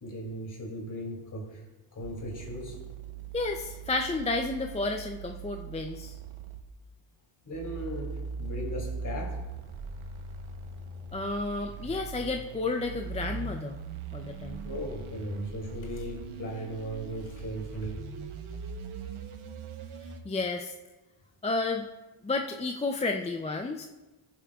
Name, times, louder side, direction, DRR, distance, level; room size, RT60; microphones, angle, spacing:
voice 1, 0.0-2.9 7.4-9.4 14.6-18.0, equal, 40° left, 0 dB, 2.7 m, -37 dB
sound 1, 2.0-6.7 7.5-20.2, right 5 dB, 80° right, 1.0 m, -40 dB
voice 2, 3.3-6.2 11.1-13.8 14.1-14.6 20.2-20.7 21.4-21.9 22.2-23.9, left 3 dB, 15° left, 3 dB, 0.4 m, -31 dB
19.5 x 7.4 x 2.3 m, 1.1 s
wide cardioid pair, 135°, 48 cm